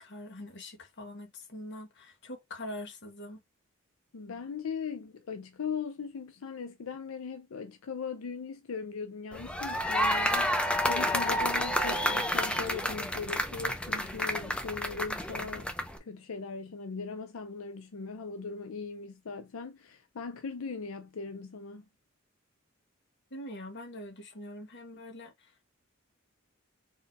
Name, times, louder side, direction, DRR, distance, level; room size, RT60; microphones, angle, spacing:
voice 1, 0.0-3.4 23.3-25.7, left 1 dB, 60° left, 1.5 m, -43 dB
voice 2, 4.1-15.7 16.0-21.9, left 5 dB, 90° left, 0.5 m, -39 dB
sound 1, 9.3-16.0, equal, 5° left, 0.7 m, -30 dB
4.4 x 3.7 x 2.7 m
head